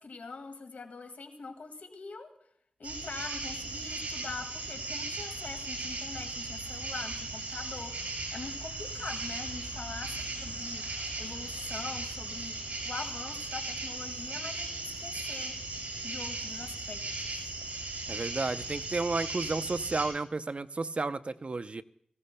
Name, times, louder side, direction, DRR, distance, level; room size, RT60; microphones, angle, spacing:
voice 1, 0.0-2.3 2.8-17.0 17.3-17.5, left 4 dB, 85° left, 2.0 m, -43 dB
sound 1, 2.8-20.1, right 2 dB, 65° right, 7.1 m, -37 dB
voice 2, 18.1-21.8, right 3 dB, 45° right, 0.6 m, -32 dB
23.0 x 15.5 x 2.2 m
wide cardioid pair, 60°, 3 cm